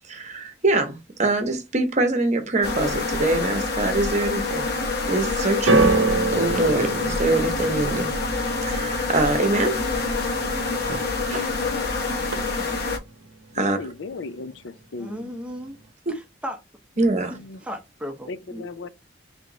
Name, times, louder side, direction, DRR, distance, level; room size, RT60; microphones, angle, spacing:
voice 1, 0.1-4.8 5.1-6.0 6.3-8.2 8.7-9.8 10.9-11.6 13.5-13.9 17.0-17.3, right 2 dB, 40° right, 0.9 m, -24 dB
sound 1, 2.6-13.0, left 3 dB, 55° left, 1.0 m, -26 dB
sound 2, 5.7-11.9 12.2-12.9 13.6-13.7, right 3 dB, 75° right, 0.7 m, -27 dB
voice 2, 11.4-12.0 12.4-12.8 13.5-15.4 17.1-17.6 18.3-18.9, left 4 dB, 70° left, 0.5 m, -37 dB
voice 3, 15.0-15.8 16.1-16.6 17.3-17.4 17.6-18.7, equal, 5° right, 0.7 m, -35 dB
3.4 x 2.9 x 3.9 m
head